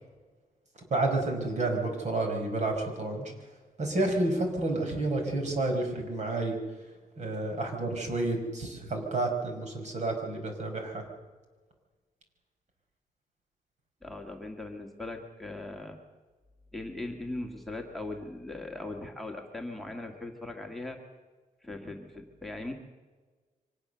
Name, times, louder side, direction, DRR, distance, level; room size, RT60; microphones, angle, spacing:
voice 1, 0.9-3.3 3.8-6.6 7.2-11.0, right 2 dB, 55° right, 3 dB, 4.9 m, -30 dB
voice 2, 14.0-16.0 16.7-21.0 21.6-22.7, left 2 dB, ahead, 3 dB, 1.9 m, -39 dB
24.0 x 19.0 x 6.8 m, 1.4 s
wide cardioid pair, 145°, 14 cm